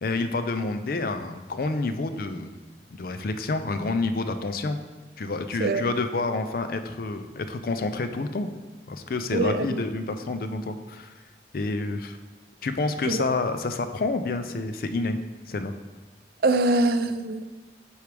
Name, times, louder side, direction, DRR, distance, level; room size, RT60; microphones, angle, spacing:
voice 1, 0.0-2.5 2.9-4.8 5.2-8.5 8.9-11.1 11.5-12.2 12.6-15.2 15.5-15.7, left 3 dB, 55° left, 9 dB, 0.4 m, -28 dB
voice 2, 9.3-9.8 13.1-13.3 16.4-17.4, right 2 dB, 55° right, 9 dB, 0.4 m, -23 dB
8.1 x 4.7 x 3.4 m, 1.3 s
head